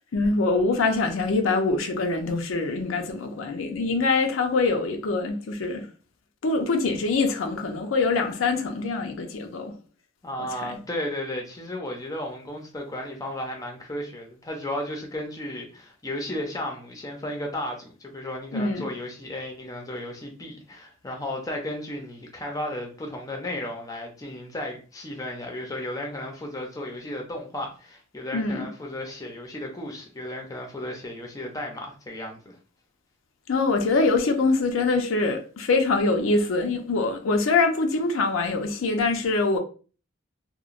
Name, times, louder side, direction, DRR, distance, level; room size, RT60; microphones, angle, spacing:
voice 1, 0.1-5.8 6.4-9.7 10.4-10.8 18.5-18.8 28.3-28.7 33.5-39.6, left 3 dB, 90° left, 0.5 m, -24 dB
voice 2, 10.2-32.6, left 1 dB, 20° left, 0.5 m, -34 dB
2.9 x 2.1 x 2.4 m
head